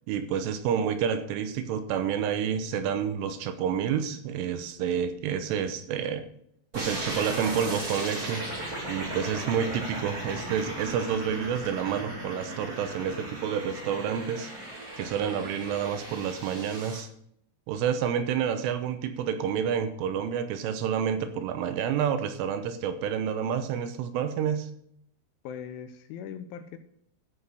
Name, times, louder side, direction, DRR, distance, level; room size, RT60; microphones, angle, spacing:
voice 1, 0.1-6.3 6.8-8.4 8.9-14.5 15.0-17.1 17.7-24.7, right 8 dB, 80° right, 9 dB, 3.3 m, -29 dB
sound 1, 6.7-17.0, right 1 dB, 25° right, 2.5 m, -37 dB
voice 2, 25.4-26.8, left 8 dB, 80° left, 10 dB, 2.9 m, -40 dB
14.0 x 5.7 x 6.5 m, 0.70 s
omnidirectional pair, 5.9 m